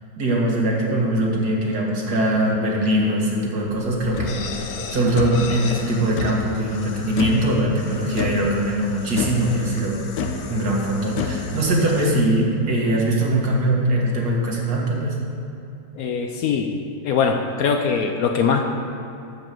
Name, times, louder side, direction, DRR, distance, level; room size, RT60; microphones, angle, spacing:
voice 1, 0.2-10.0 10.5-15.2, right 1 dB, 65° right, -2 dB, 2.2 m, -21 dB
sound 1, 3.7-12.1, left 5 dB, 85° left, 1.4 m, -31 dB
voice 2, 16.0-16.7 17.0-18.6, left 6 dB, 65° left, 5 dB, 1.0 m, -21 dB
12.0 x 5.0 x 7.6 m, 2.7 s
omnidirectional pair, 1.9 m